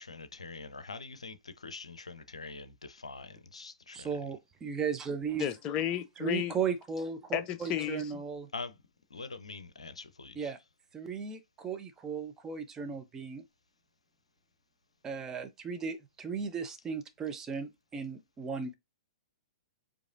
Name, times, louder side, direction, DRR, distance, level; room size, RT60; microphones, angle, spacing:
voice 1, 0.0-4.1 8.5-8.8 9.1-10.5, left 4 dB, 75° left, 0.6 m, -44 dB
voice 2, 3.9-5.5 6.2-8.5 10.4-10.6 10.9-13.4 15.0-18.7, right 6 dB, 15° right, 0.6 m, -36 dB
voice 3, 5.4-6.5 7.3-8.0, left 11 dB, 25° left, 0.6 m, -32 dB
4.8 x 2.6 x 2.5 m
figure-of-eight pair, 110°, 3 cm